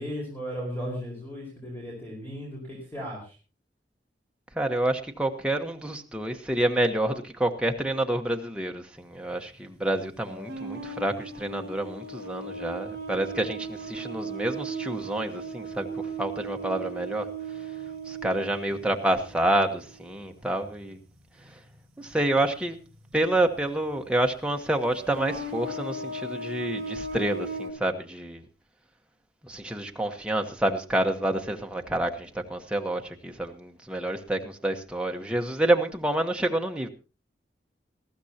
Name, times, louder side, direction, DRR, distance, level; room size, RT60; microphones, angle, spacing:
voice 1, 0.0-3.3, equal, 10° left, 4.7 m, -36 dB
voice 2, 4.5-15.9 16.2-17.3 18.1-21.0 21.5-21.6 22.0-22.8 23.1-28.4 29.4-36.9, right 1 dB, 5° right, 1.1 m, -28 dB
sound 1, 10.2-20.2 20.5-20.8 22.4-22.5 23.5-23.6 24.9-27.7, right 3 dB, 55° right, 5.5 m, -37 dB
19.5 x 14.5 x 2.9 m
head